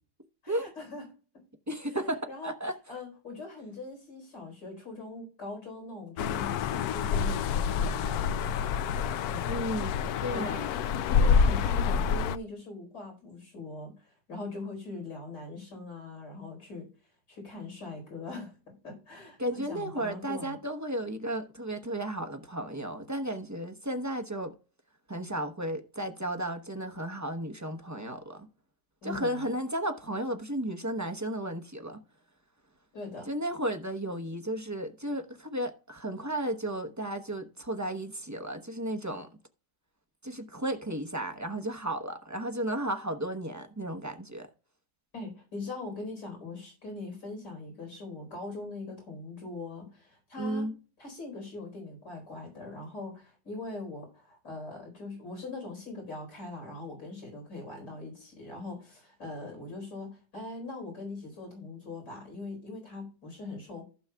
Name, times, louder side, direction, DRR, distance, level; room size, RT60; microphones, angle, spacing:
voice 1, 0.4-1.0 2.3-2.5 2.9-8.6 9.2-9.7 10.3-10.7 11.1-16.9 17.3-20.5 29.0-29.5 32.9-33.3 45.1-50.7 51.0-63.8, left 2 dB, 90° left, 4.9 m, -41 dB
voice 2, 1.7-2.7 9.4-10.6 19.4-24.5 25.1-28.5 29.0-32.0 33.3-39.3 40.2-44.5 50.4-50.8, right 1 dB, 15° right, 0.6 m, -34 dB
sound 1, 6.2-12.4, left 6 dB, 75° left, 1.0 m, -27 dB
15.0 x 6.9 x 2.3 m
omnidirectional pair, 1.7 m